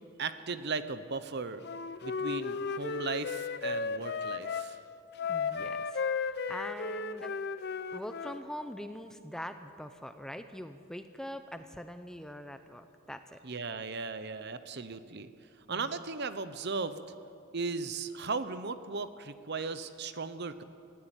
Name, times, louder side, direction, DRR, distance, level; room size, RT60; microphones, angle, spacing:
voice 1, 0.2-1.6 2.0-4.8 13.4-15.3 15.7-17.0 17.5-20.6, right 4 dB, 50° right, 12 dB, 0.9 m, -37 dB
Wind instrument woodwind instrument, 1.6-4.7 5.2-8.4, left 5 dB, 50° left, 0.7 m, -34 dB
voice 2, 5.3-7.5 7.9-13.4 15.7-15.9, equal, 5° left, 9 dB, 0.6 m, -43 dB
19.0 x 15.5 x 9.0 m, 2.5 s
head